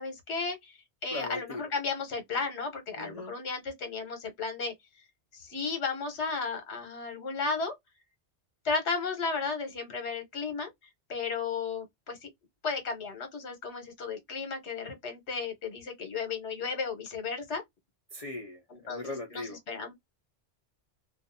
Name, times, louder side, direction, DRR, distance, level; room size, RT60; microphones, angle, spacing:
voice 1, 0.0-4.7 5.3-7.7 8.6-10.7 11.1-12.3 12.6-17.6 18.7-19.9, left 4 dB, 75° left, 1.2 m, -34 dB
voice 2, 1.1-1.6 3.0-3.3 18.1-19.6, left 2 dB, 45° left, 0.6 m, -39 dB
2.5 x 2.4 x 2.5 m
omnidirectional pair, 1.2 m